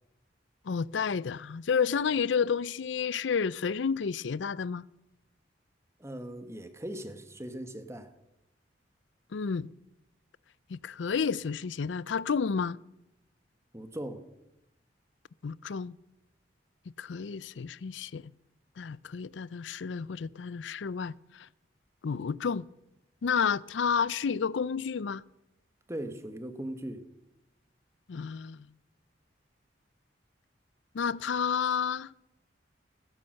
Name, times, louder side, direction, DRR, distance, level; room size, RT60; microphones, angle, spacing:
voice 1, 0.7-4.9 9.3-9.7 10.7-12.8 15.4-16.0 17.0-18.3 18.8-21.5 22.0-22.7 23.2-25.2 28.1-28.7 30.9-32.1, left 6 dB, 80° left, 0.5 m, -31 dB
voice 2, 6.0-8.1 13.7-14.2 25.9-27.1, right 1 dB, 15° right, 1.4 m, -39 dB
15.5 x 14.5 x 6.5 m
head